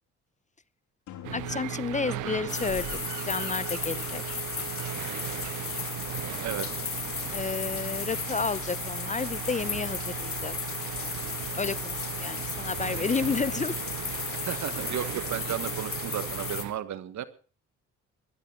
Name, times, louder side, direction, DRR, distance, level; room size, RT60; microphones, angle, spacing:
sound 1, 1.1-4.9, left 11 dB, 80° left, 3.2 m, -46 dB
sound 2, 1.2-16.7, right 16 dB, 85° right, 0.7 m, -37 dB
voice 1, 1.3-2.9 3.2-4.2 7.3-10.5 11.6-13.8, left 4 dB, 25° left, 19 dB, 0.7 m, -31 dB
sound 3, 2.5-16.6, left 7 dB, 45° left, 2.9 m, -35 dB
voice 2, 6.4-6.8 14.5-17.3, right 10 dB, 70° right, 14 dB, 1.6 m, -34 dB
20.0 x 11.5 x 4.5 m, 0.38 s
cardioid pair, 90°, 30 cm